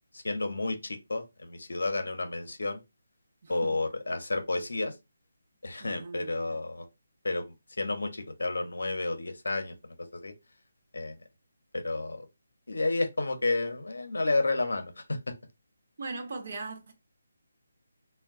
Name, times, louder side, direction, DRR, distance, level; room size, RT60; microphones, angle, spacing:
voice 1, 0.1-2.8 3.5-4.9 5.6-6.9 7.2-7.5 7.8-9.7 10.1-10.3 10.9-11.2 11.7-12.2 12.7-15.3, left 2 dB, 80° left, 0.7 m, -31 dB
voice 2, 3.4-3.9 5.8-6.6 16.0-16.9, right 3 dB, 55° right, 0.8 m, -40 dB
2.3 x 2.2 x 3.5 m
figure-of-eight pair, 160°, 0 cm